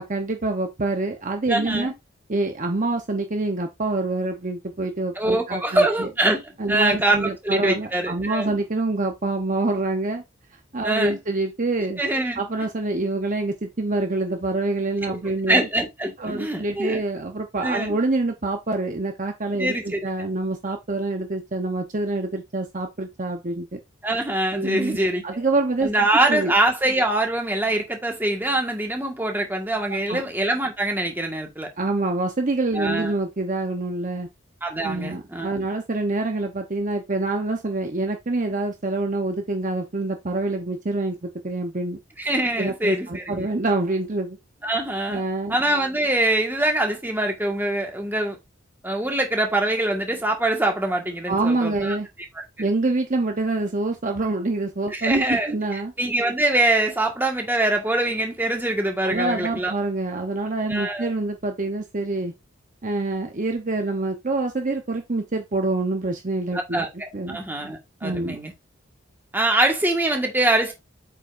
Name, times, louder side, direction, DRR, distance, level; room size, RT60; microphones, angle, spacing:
voice 1, 0.0-1.9 2.3-6.1 6.6-10.2 10.7-12.0 12.4-15.7 16.2-23.8 24.5-25.9 26.3-26.5 30.1-30.2 31.8-34.3 34.8-42.0 42.6-44.4 45.1-45.6 51.3-52.1 52.6-55.9 59.0-62.3 62.8-66.8 67.1-67.4 68.0-68.4, right 2 dB, 40° right, 0.9 m, -26 dB
voice 2, 1.5-1.9 5.2-8.6 10.8-11.2 12.0-12.4 15.5-17.0 17.6-18.0 19.6-20.1 24.0-25.4 25.8-31.7 32.7-33.1 34.6-35.6 42.2-43.5 44.6-45.2 45.5-48.4 48.8-52.0 54.9-59.7 60.7-61.1 66.5-68.5 69.3-70.7, right 1 dB, 10° right, 1.6 m, -24 dB
8.3 x 5.2 x 2.6 m
head